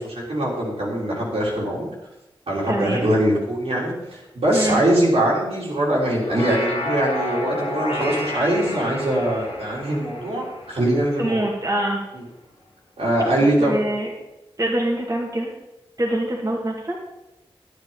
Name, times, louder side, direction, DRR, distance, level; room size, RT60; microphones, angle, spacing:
voice 1, 0.0-1.9 2.5-11.4 12.1-12.2 13.0-13.8, right 1 dB, 80° right, -5 dB, 3.6 m, -22 dB
voice 2, 2.7-3.1 4.5-4.8 11.2-12.0 13.6-14.1 14.6-15.5 16.0-17.0, right 1 dB, 35° right, -2 dB, 2.3 m, -24 dB
sound 1, 6.1-11.6, left 1 dB, 80° left, 1.9 m, -30 dB
10.0 x 9.8 x 4.1 m, 0.95 s
cardioid pair, 40°, 10 cm